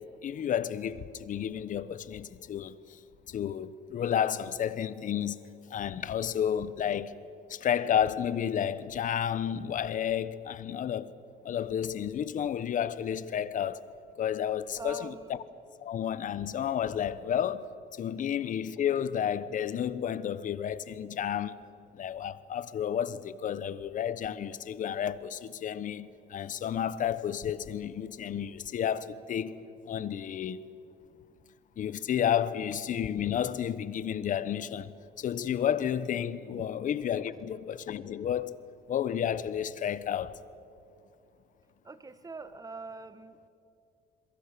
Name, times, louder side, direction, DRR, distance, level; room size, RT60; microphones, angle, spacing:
voice 1, 0.0-3.0 3.3-5.4 5.7-7.2 7.5-11.1 11.4-13.9 14.2-15.4 15.8-17.7 18.0-21.7 21.9-29.6 29.9-30.7 31.8-34.9 35.2-38.6 38.9-40.4, left 9 dB, 50° left, 1.1 m, -31 dB
voice 2, 14.8-15.4 41.9-43.5, right 3 dB, 20° right, 1.6 m, -43 dB
27.5 x 22.5 x 6.8 m
cardioid pair, 110°, 17 cm